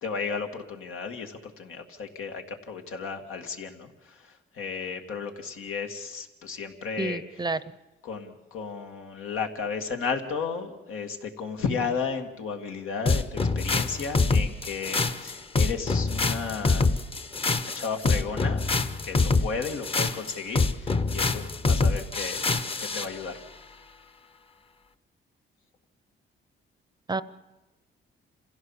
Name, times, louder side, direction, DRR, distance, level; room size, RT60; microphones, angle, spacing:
voice 1, 0.0-7.2 8.0-16.9 17.7-18.7 19.0-22.4 22.8-23.4, left 5 dB, 90° left, 4 dB, 2.1 m, -34 dB
voice 2, 7.0-7.6 27.1-27.2, right 3 dB, 20° right, 16 dB, 0.6 m, -29 dB
sound 1, 13.1-23.1, left 3 dB, 25° left, 0.8 m, -25 dB
26.5 x 16.0 x 7.2 m, 1.1 s
cardioid pair, 120°, 21 cm